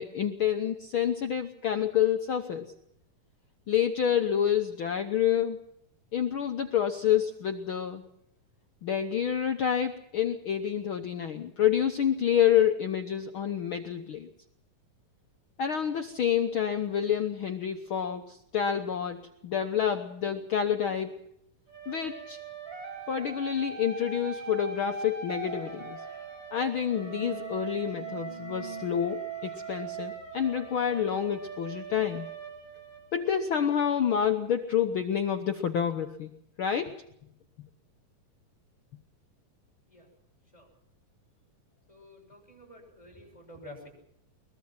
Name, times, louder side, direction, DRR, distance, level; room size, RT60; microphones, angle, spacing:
voice 1, 0.0-2.7 3.7-5.6 6.1-8.0 8.8-14.3 15.6-21.3 21.9-22.4 23.1-26.0 26.5-32.3 33.1-36.3 36.6-37.1, left 9 dB, 80° left, 6 dB, 1.1 m, -28 dB
sound 1, 21.7-33.5, right 5 dB, 40° right, 6.9 m, -41 dB
sound 2, 26.1-26.3 26.6-33.2, right 1 dB, 65° right, 0.4 m, -50 dB
voice 2, 41.9-43.9, left 1 dB, 10° left, 2 dB, 6.4 m, -49 dB
22.5 x 21.5 x 5.9 m, 0.72 s
omnidirectional pair, 3.8 m